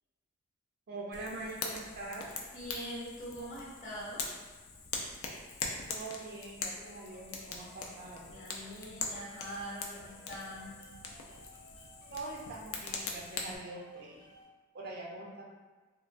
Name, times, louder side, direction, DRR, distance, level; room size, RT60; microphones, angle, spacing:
voice 1, 0.9-2.3 5.9-8.3 12.1-14.2 14.7-15.5, right 2 dB, 45° right, -2 dB, 0.4 m, -43 dB
Fire, 1.1-13.6, left 4 dB, 70° left, 0.4 m, -42 dB
voice 2, 2.5-4.3 8.3-10.8, equal, 35° left, -7 dB, 0.8 m, -43 dB
sound 1, 6.7-14.4, left 2 dB, 90° left, 0.9 m, -58 dB
3.2 x 2.0 x 2.4 m, 1.3 s
head